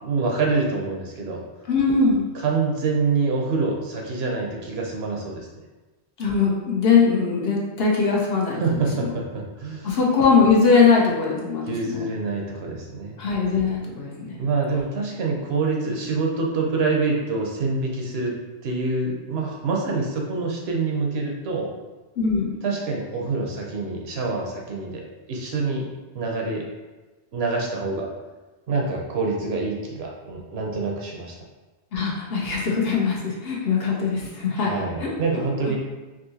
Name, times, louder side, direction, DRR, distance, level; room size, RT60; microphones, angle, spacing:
voice 1, 0.0-1.4 2.3-5.5 8.6-9.9 11.7-13.2 14.3-18.3 18.6-21.7 22.6-25.9 26.1-26.6 27.3-28.1 28.7-31.3 34.6-35.8, right 3 dB, 70° right, -1 dB, 0.9 m, -26 dB
voice 2, 1.7-2.3 6.2-9.1 9.8-12.0 13.2-14.4 22.2-22.6 31.9-35.1, left 5 dB, 65° left, -3 dB, 0.9 m, -21 dB
3.6 x 2.7 x 2.7 m, 1.2 s
omnidirectional pair, 1.1 m